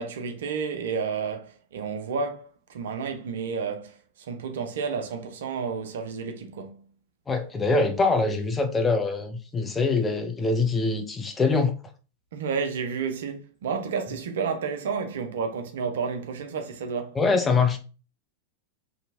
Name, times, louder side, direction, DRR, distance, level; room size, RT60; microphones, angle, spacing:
voice 1, 0.0-6.8 12.3-17.2, right 5 dB, 60° right, 0.5 m, -31 dB
voice 2, 7.3-11.7 17.2-17.8, left 3 dB, 15° left, 0.5 m, -24 dB
2.8 x 2.7 x 2.5 m
figure-of-eight pair, 90°, 0 cm